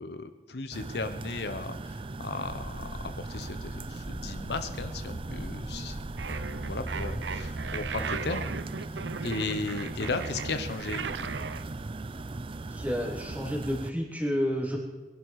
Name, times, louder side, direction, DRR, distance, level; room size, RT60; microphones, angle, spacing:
voice 1, 0.0-2.9 3.2-6.0 6.3-8.5 9.2-11.3, left 3 dB, 65° left, 9 dB, 0.9 m, -36 dB
sound 1, 0.7-13.9, right 2 dB, 30° right, 0.5 m, -38 dB
sound 2, 2.4-8.1, equal, 30° left, 2.8 m, -43 dB
sound 3, 6.2-11.6, right 5 dB, 75° right, 0.7 m, -37 dB
voice 2, 12.7-14.8, equal, 10° right, -2 dB, 3.5 m, -30 dB
21.5 x 11.5 x 4.8 m, 1.3 s
head